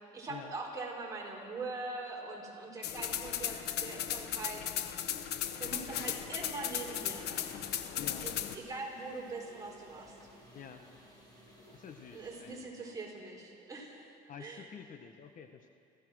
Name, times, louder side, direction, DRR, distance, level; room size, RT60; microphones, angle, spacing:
voice 1, 0.0-4.6 5.6-7.6 8.2-10.1 12.1-14.1 14.4-14.6, right 3 dB, 20° right, -3 dB, 5.5 m, -42 dB
sound 1, 2.8-8.6, left 10 dB, 80° left, 1.2 m, -36 dB
sound 2, 6.6-12.5, equal, 25° left, 6.1 m, -57 dB
voice 2, 10.5-10.9 11.7-13.0 14.3-15.7, left 7 dB, 50° left, 6 dB, 1.2 m, -49 dB
27.0 x 15.5 x 6.3 m, 2.5 s
cardioid pair, 110°, 17 cm